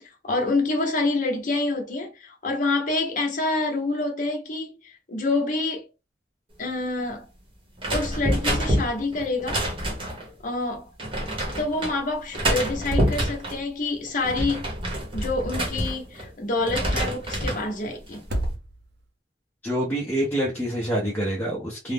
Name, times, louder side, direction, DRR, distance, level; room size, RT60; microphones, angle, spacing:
voice 1, 0.2-5.8 6.6-7.3 7.9-9.6 10.4-10.9 11.6-14.7 15.1-18.2, left 2 dB, 45° left, 0.8 m, -27 dB
sound 1, 7.8-10.3 11.0-11.9 12.3-13.6 14.1-16.3 16.6-17.7 18.1-18.5, right 1 dB, 30° right, 0.9 m, -27 dB
sound 2, 9.9-10.4 10.7-10.8 12.7-13.7 15.4-16.3 18.1-19.1, right 1 dB, 85° right, 0.7 m, -33 dB
voice 2, 19.6-21.9, right 1 dB, 10° left, 0.6 m, -26 dB
2.4 x 2.0 x 3.4 m
head